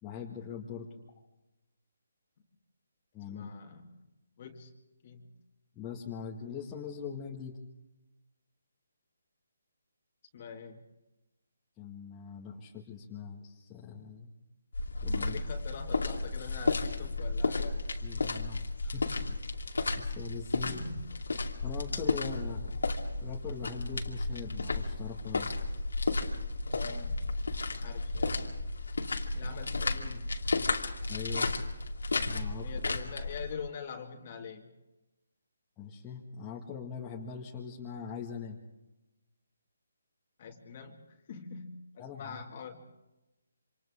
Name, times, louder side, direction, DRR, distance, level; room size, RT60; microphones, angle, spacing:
voice 1, 0.0-0.9 3.1-3.5 5.8-7.6 11.8-14.3 15.0-15.4 18.0-19.4 19.9-20.8 21.6-22.8 23.2-25.5 31.1-31.5 32.2-32.7 35.8-38.6 42.0-42.4, left 6 dB, 15° left, -4 dB, 1.9 m, -42 dB
voice 2, 3.3-3.9 4.4-4.7 5.0-5.3 10.3-10.8 15.2-17.8 20.6-21.0 26.6-27.3 27.8-28.5 29.3-30.3 32.6-34.7 40.4-42.8, left 6 dB, 35° left, 3 dB, 2.2 m, -44 dB
sound 1, 14.7-33.5, left 3 dB, 90° left, 2.5 m, -33 dB
28.0 x 26.5 x 3.7 m, 0.98 s
hypercardioid pair, 165°, 0 cm